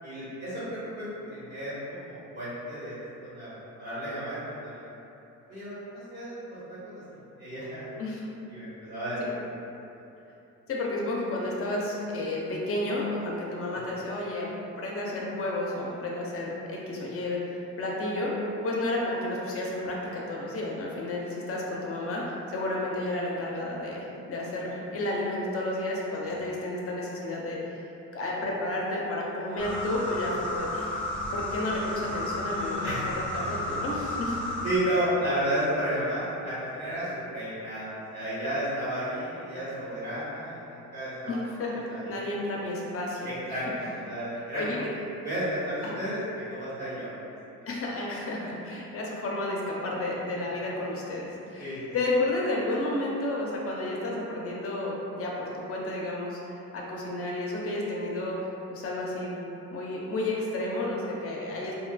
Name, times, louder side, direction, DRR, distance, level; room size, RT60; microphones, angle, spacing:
voice 1, 0.0-2.9 3.2-4.8 5.5-7.0 7.4-7.9 8.5-9.4 32.8-33.0 33.3-33.4 34.6-41.4 41.9-42.2 43.2-46.2 46.5-47.3 51.6-51.8, right 1 dB, 35° right, -13 dB, 1.3 m, -32 dB
voice 2, 10.7-14.5 14.8-27.6 28.1-30.9 31.3-34.4 41.3-43.6 44.3-44.9 45.8-46.0 47.7-58.4 58.7-59.4 59.7-61.7, left 1 dB, 50° left, -3 dB, 0.6 m, -31 dB
sound 1, 29.6-34.8, left 1 dB, 5° left, 0.8 m, -33 dB
2.9 x 2.3 x 2.2 m, 2.9 s
cardioid pair, 90°, 30 cm